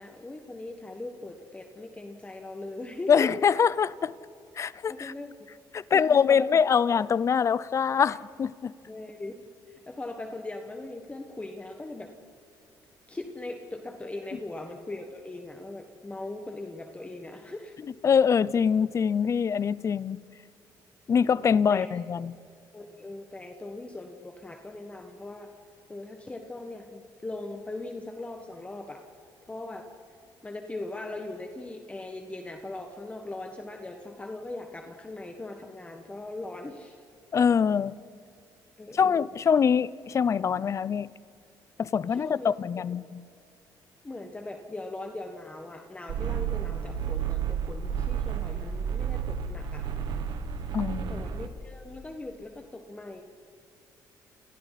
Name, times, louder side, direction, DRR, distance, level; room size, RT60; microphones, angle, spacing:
voice 1, 0.0-3.3 4.9-5.5 5.9-6.6 8.1-8.2 8.9-9.3 9.7-12.1 13.1-17.8 21.4-21.9 22.7-25.5 25.9-29.0 29.5-29.9 30.4-37.0 38.8-39.3 42.1-42.5 44.0-49.9 51.0-53.2, left 2 dB, 15° left, 1.6 m, -40 dB
voice 2, 3.1-4.1 4.6-5.1 5.7-8.7 18.0-20.2 21.1-22.3 37.3-37.9 38.9-41.1 41.8-43.2 50.7-51.2, left 7 dB, 40° left, 0.6 m, -24 dB
sound 1, 46.1-51.5, right 8 dB, 70° right, 1.5 m, -31 dB
29.5 x 29.0 x 4.2 m
cardioid pair, 100°, 8 cm